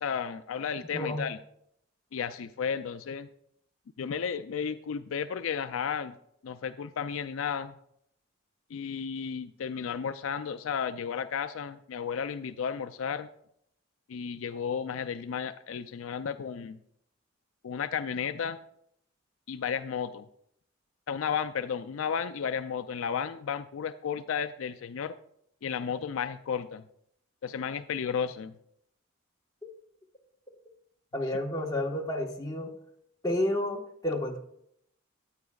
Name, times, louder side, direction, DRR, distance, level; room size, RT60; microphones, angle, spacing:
voice 1, 0.0-1.4 2.1-3.3 4.0-6.2 6.4-7.7 8.7-13.3 14.1-16.8 17.6-18.6 19.5-20.3 21.1-25.1 25.6-26.8 27.4-28.5, left 7 dB, 75° left, 11 dB, 0.4 m, -33 dB
voice 2, 0.9-1.2 31.1-32.7 33.2-34.4, left 1 dB, 20° left, 1 dB, 1.3 m, -30 dB
14.0 x 9.6 x 2.3 m, 0.72 s
head